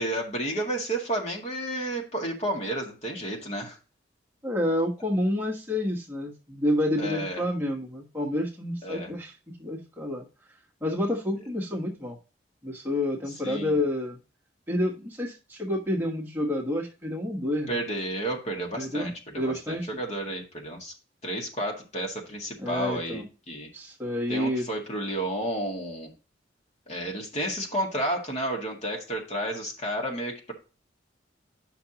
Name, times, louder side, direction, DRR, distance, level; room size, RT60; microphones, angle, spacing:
voice 1, 0.0-3.8 7.0-7.4 8.8-9.1 13.4-13.8 17.7-20.9 21.2-23.7 24.3-26.1 26.9-30.5, right 1 dB, 35° left, 0 dB, 1.9 m, -31 dB
voice 2, 4.4-9.3 9.6-10.2 10.8-12.2 12.6-14.2 14.7-17.8 18.8-19.1 19.4-19.9 22.6-23.3 23.7-24.7, left 1 dB, 10° right, -2 dB, 1.3 m, -29 dB
9.3 x 5.9 x 2.9 m, 0.33 s
head